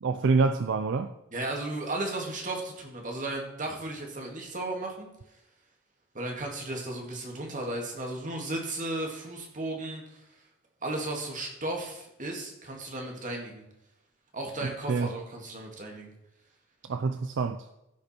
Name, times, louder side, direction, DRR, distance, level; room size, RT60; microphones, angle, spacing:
voice 1, 0.0-1.1 14.6-15.1 16.9-17.6, right 4 dB, 65° right, 0.5 m, -27 dB
voice 2, 1.3-5.1 6.1-10.0 10.8-13.6 14.3-16.1, right 2 dB, 40° right, 2.2 m, -35 dB
15.0 x 5.3 x 4.4 m
head